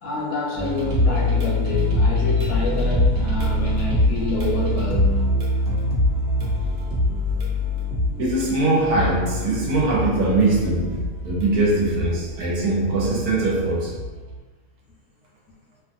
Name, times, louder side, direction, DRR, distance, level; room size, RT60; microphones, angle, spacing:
voice 1, 0.0-5.3, left 2 dB, 70° left, 0.9 m, -27 dB
sound 1, 0.6-14.4, left 1 dB, 60° right, 0.8 m, -24 dB
voice 2, 8.2-14.0, right 2 dB, 75° right, 1.1 m, -21 dB
2.9 x 2.3 x 2.5 m
omnidirectional pair, 1.7 m